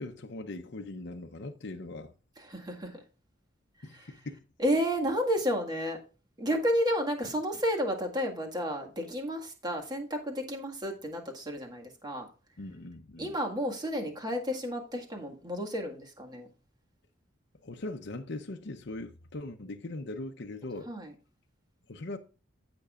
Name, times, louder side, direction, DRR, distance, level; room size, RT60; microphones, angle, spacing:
voice 1, 0.0-2.1 3.8-4.4 12.6-13.4 17.6-20.9 21.9-22.2, left 2 dB, 60° left, 0.7 m, -40 dB
voice 2, 2.4-3.0 3.9-4.1 4.6-6.0 6.4-12.3 13.2-16.5 20.9-21.1, equal, 20° right, 1.8 m, -31 dB
15.5 x 6.0 x 2.5 m
head